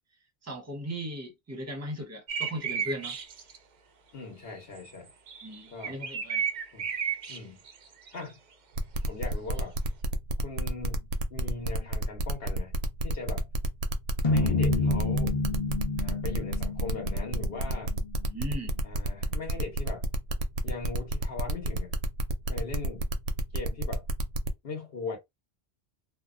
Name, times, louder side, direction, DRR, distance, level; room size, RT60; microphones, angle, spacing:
voice 1, 0.4-3.2 5.4-6.5 18.3-18.7, equal, 15° right, 0.7 m, -37 dB
sound 1, 2.3-3.6 4.8-4.9 5.3-7.4 7.7-8.2, right 7 dB, 55° right, 0.5 m, -33 dB
voice 2, 4.1-5.1 5.7-6.0 6.7-6.9 7.3-7.6 8.1-8.4 9.0-9.8 10.4-12.7 13.0-13.5 14.3-15.4 16.0-18.0 18.8-20.1 20.6-21.9 22.5-23.1 23.5-24.1 24.6-25.2, left 4 dB, 65° left, 1.1 m, -39 dB
sound 2, 8.8-24.5, right 1 dB, 80° right, 0.8 m, -30 dB
sound 3, 14.2-18.6, left 3 dB, 40° left, 0.8 m, -29 dB
2.6 x 2.2 x 2.4 m
omnidirectional pair, 1.1 m